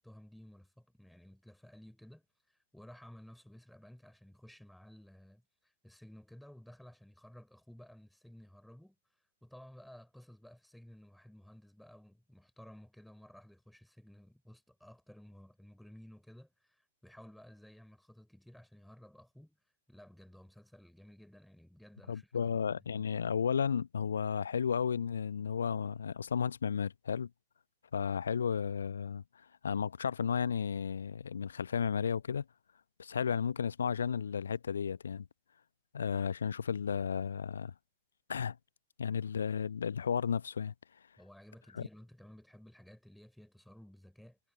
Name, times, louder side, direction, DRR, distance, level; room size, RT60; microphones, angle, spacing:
voice 1, 0.0-9.0 9.4-19.6 19.9-23.1 41.2-44.4, equal, ahead, 4.8 m, -55 dB
voice 2, 22.1-27.3 27.9-29.2 29.6-32.4 33.0-35.3 35.9-37.7 38.3-38.6 39.0-40.7 41.8-41.9, left 7 dB, 65° left, 0.9 m, -33 dB
figure-of-eight pair, 100°, 0 cm